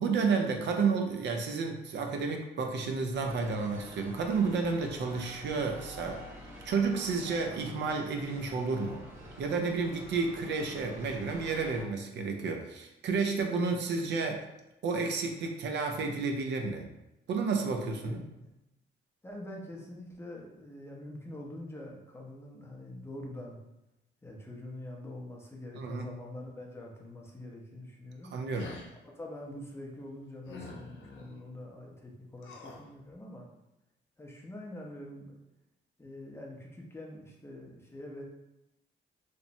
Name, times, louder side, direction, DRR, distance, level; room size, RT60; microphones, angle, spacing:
voice 1, 0.0-6.2 6.6-9.0 9.4-14.4 14.8-16.9 17.3-18.2 25.7-26.1 28.3-28.7, right 4 dB, 60° right, 3 dB, 0.4 m, -31 dB
sound 1, 3.1-11.8, equal, 85° right, 1.0 m, -48 dB
voice 2, 18.0-18.5 19.2-23.6 24.2-28.3 29.1-33.5 34.2-35.4 36.0-38.2, left 1 dB, 15° left, -2 dB, 0.6 m, -45 dB
sound 2, 28.5-28.9 30.4-31.3 32.4-32.9, left 3 dB, 70° left, 0.5 m, -46 dB
2.9 x 2.0 x 2.6 m, 0.93 s
cardioid pair, 90°, 20 cm